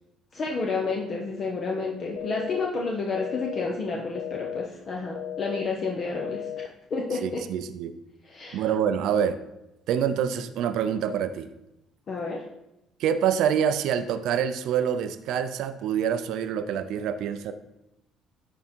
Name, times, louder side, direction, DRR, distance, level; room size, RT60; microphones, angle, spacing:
voice 1, 0.3-7.4 8.2-8.6 12.1-12.5, left 3 dB, 40° left, 0 dB, 1.0 m, -30 dB
sound 1, 2.2-2.7 3.2-3.7 4.2-4.7 5.2-5.7 6.2-6.7, left 10 dB, 90° left, 0.5 m, -34 dB
voice 2, 7.2-7.9 8.5-9.4 9.9-11.5 13.0-17.5, right 8 dB, 75° right, 10 dB, 0.5 m, -26 dB
11.0 x 3.7 x 4.5 m, 0.89 s
cardioid pair, 130°, 0 cm